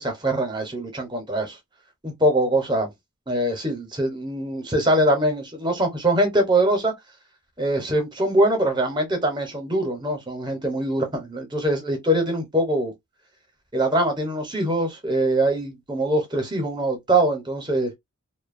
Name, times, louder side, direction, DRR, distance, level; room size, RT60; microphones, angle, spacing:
voice 1, 0.0-1.6 2.0-2.9 3.3-6.9 7.6-12.9 13.7-17.9, right 1 dB, 20° right, 0.8 m, -23 dB
2.7 x 2.2 x 2.5 m
head